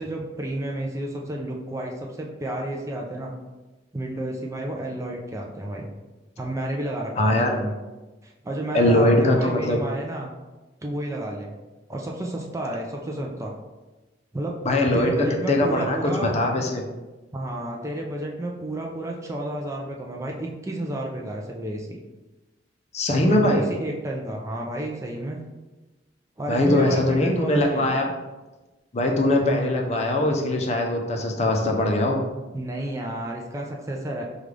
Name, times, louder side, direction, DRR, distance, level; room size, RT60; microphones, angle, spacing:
voice 1, 0.0-3.3 3.9-5.9 6.4-7.8 8.2-10.3 10.8-11.6 11.9-13.5 14.3-14.6 14.9-16.3 17.3-22.0 23.2-25.4 26.4-28.0 32.5-34.2, right 1 dB, 15° right, 0 dB, 0.4 m, -31 dB
voice 2, 7.2-7.6 8.7-9.8 14.6-16.8 22.9-23.7 26.5-28.1 28.9-32.2, left 1 dB, 35° left, 1 dB, 0.5 m, -21 dB
5.2 x 2.4 x 3.2 m, 1.1 s
head